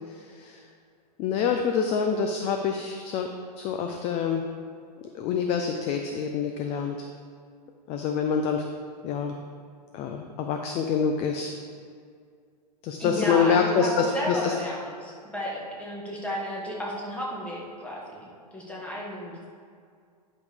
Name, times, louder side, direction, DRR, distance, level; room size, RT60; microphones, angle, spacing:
voice 1, 0.1-0.6 1.2-3.3 3.6-4.4 5.0-7.1 7.9-8.7 9.0-9.4 9.9-11.5 12.8-14.6, left 6 dB, 30° left, 4 dB, 0.5 m, -26 dB
voice 2, 13.0-19.5, equal, 5° left, -4 dB, 1.5 m, -33 dB
10.5 x 5.2 x 3.5 m, 2.2 s
hypercardioid pair, 130°, 21 cm